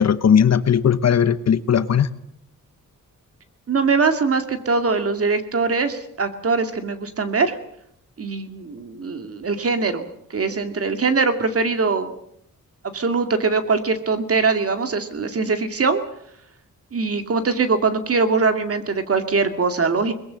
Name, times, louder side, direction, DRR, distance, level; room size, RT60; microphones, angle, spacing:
voice 1, 0.0-2.1, left 8 dB, 50° left, 13 dB, 1.1 m, -17 dB
voice 2, 3.7-7.6 8.2-12.1 12.9-16.0 16.9-20.1, right 4 dB, 45° right, 8 dB, 2.3 m, -22 dB
23.0 x 21.0 x 7.6 m, 0.71 s
wide cardioid pair, 145°, 33 cm